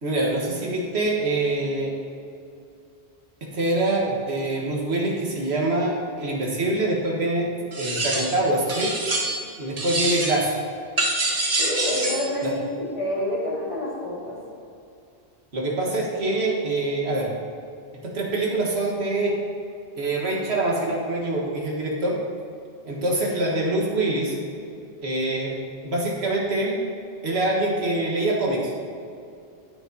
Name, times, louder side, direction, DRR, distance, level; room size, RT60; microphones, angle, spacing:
voice 1, 0.0-1.9 3.5-7.5 7.8-8.9 9.6-10.5 12.4-12.5 15.5-17.3 18.0-19.3 20.0-22.2 22.9-24.4 25.0-25.6 25.8-26.8 27.2-28.7, right 2 dB, 80° right, -3 dB, 1.7 m, -24 dB
sound 1, 7.7-8.4 8.7-9.5 9.8-10.5 11.0-12.3, right 2 dB, 40° right, 1.1 m, -25 dB
voice 2, 11.6-14.4, left 1 dB, 30° left, -6 dB, 2.2 m, -28 dB
10.0 x 9.7 x 2.8 m, 2.5 s
omnidirectional pair, 1.1 m